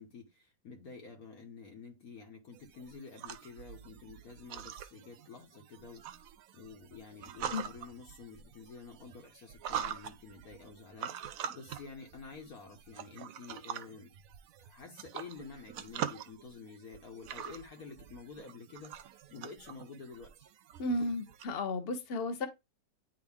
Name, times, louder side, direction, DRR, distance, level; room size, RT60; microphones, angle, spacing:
voice 1, 0.0-6.0 6.5-14.1 14.6-20.3, left 4 dB, 55° left, 1.7 m, -49 dB
sound 1, 2.5-21.5, right 9 dB, 65° right, 0.9 m, -44 dB
voice 2, 20.8-22.5, left 2 dB, 40° left, 1.1 m, -33 dB
9.4 x 3.6 x 3.6 m
omnidirectional pair, 1.9 m